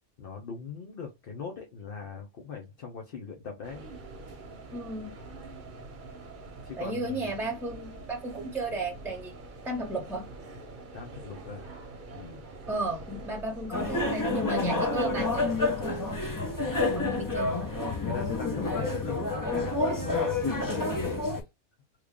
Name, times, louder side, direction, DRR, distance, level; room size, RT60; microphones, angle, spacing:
voice 1, 0.2-3.9 6.6-7.3 10.9-11.7 12.1-12.4 18.0-21.2, left 5 dB, 55° left, 0.9 m, -41 dB
sound 1, 3.6-18.4, right 2 dB, 45° right, 0.9 m, -45 dB
voice 2, 4.7-5.1 6.8-9.3 9.6-10.3 12.7-16.2 16.9-17.8, right 2 dB, ahead, 1.0 m, -34 dB
sound 2, 13.7-21.4, left 2 dB, 25° left, 0.5 m, -29 dB
3.2 x 2.4 x 3.5 m
omnidirectional pair, 1.2 m